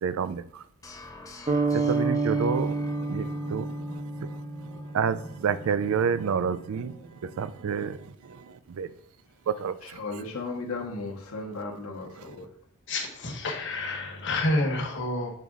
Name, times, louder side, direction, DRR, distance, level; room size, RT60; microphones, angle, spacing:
voice 1, 0.0-0.6 1.7-8.9 9.5-10.0, right 6 dB, 70° right, 0.4 m, -30 dB
sound 1, 0.8-7.8, equal, 15° left, 0.6 m, -47 dB
sound 2, 1.5-5.4, right 3 dB, 25° right, 0.6 m, -29 dB
voice 2, 9.8-12.5, left 3 dB, 80° left, 1.0 m, -35 dB
voice 3, 12.9-15.3, left 1 dB, 60° left, 1.1 m, -29 dB
6.4 x 4.0 x 3.6 m
head